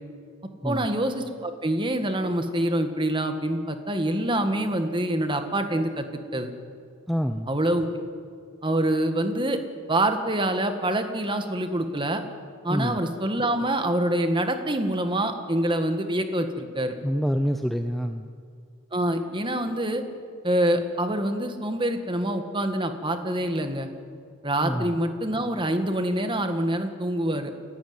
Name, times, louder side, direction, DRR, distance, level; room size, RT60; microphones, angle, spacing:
voice 1, 0.6-6.1 6.3-6.5 7.5-7.9 8.6-9.6 9.9-12.2 12.6-16.9 18.9-20.0 20.4-23.9 24.4-27.5, right 1 dB, 20° right, 7 dB, 1.8 m, -26 dB
voice 2, 7.1-7.5 12.7-13.0 17.0-18.3 24.6-24.9, equal, ahead, 7 dB, 0.7 m, -26 dB
29.0 x 14.0 x 9.6 m, 2.2 s
head